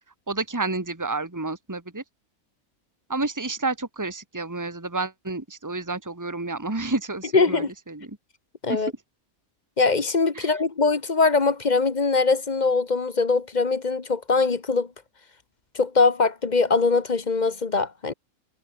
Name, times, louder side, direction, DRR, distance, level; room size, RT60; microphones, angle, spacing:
voice 1, 0.3-2.0 3.1-8.2 8.7-8.9 10.3-10.6, right 3 dB, 10° right, 2.1 m, -30 dB
voice 2, 7.3-7.7 8.6-8.9 9.8-14.9 15.7-18.1, left 4 dB, 30° left, 1.3 m, -22 dB
omnidirectional pair, 1.5 m